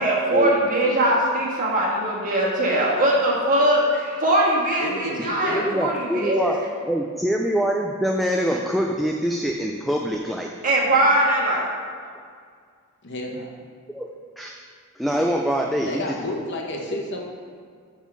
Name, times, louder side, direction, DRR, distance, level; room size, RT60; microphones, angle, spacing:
voice 1, 0.0-6.5 10.6-11.6, right 1 dB, 40° right, -4 dB, 1.6 m, -21 dB
voice 2, 4.8-5.7 13.0-13.5 15.8-17.3, left 1 dB, 55° left, 0 dB, 1.1 m, -31 dB
voice 3, 5.5-6.6 6.9-10.5 13.9-14.6 15.0-16.2, equal, ahead, 1 dB, 0.3 m, -24 dB
8.2 x 3.7 x 6.0 m, 2.1 s
head